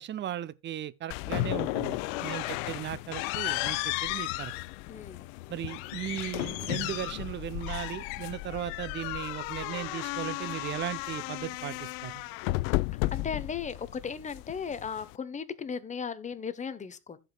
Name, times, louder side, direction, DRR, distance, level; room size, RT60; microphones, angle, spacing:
voice 1, 0.0-4.5 5.5-12.2, right 12 dB, 25° right, 0.6 m, -37 dB
sound 1, 1.1-15.2, left 20 dB, 55° left, 0.5 m, -34 dB
voice 2, 4.9-5.3 13.1-17.2, left 6 dB, 15° left, 0.9 m, -36 dB
15.5 x 5.2 x 2.3 m
supercardioid pair, 105°, 44 cm